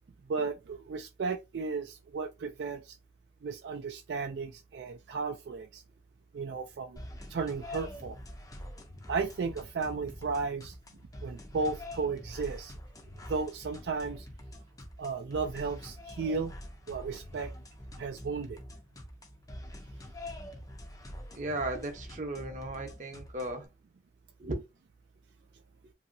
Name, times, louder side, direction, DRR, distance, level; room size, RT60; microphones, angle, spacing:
voice 1, 0.3-3.0 3.4-5.8 6.3-7.0 7.3-8.2 9.1-10.8 11.2-12.7 13.3-14.3 15.0-16.5 16.9-17.5 18.0-18.6, right 4 dB, 70° right, 0.4 m, -34 dB
sound 1, 7.0-23.7, left 1 dB, 20° left, 0.5 m, -45 dB
voice 2, 21.3-23.7 24.4-24.6, right 2 dB, 45° right, 0.8 m, -36 dB
2.8 x 2.7 x 2.6 m
head